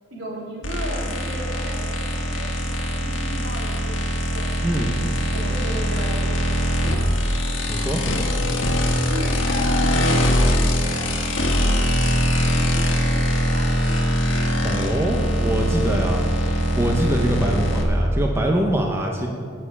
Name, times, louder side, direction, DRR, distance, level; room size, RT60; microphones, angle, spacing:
voice 1, 0.1-4.4 5.1-6.6 9.1-11.8 12.3-14.2 14.6-15.4, equal, 75° right, -4 dB, 3.3 m, -35 dB
sound 1, 0.6-17.8, equal, 80° left, 1.5 m, -22 dB
voice 2, 4.6-4.9 7.7-8.0 14.6-16.2 16.7-19.3, right 1 dB, 15° right, 0 dB, 0.8 m, -23 dB
9.6 x 6.9 x 8.3 m, 2.3 s
head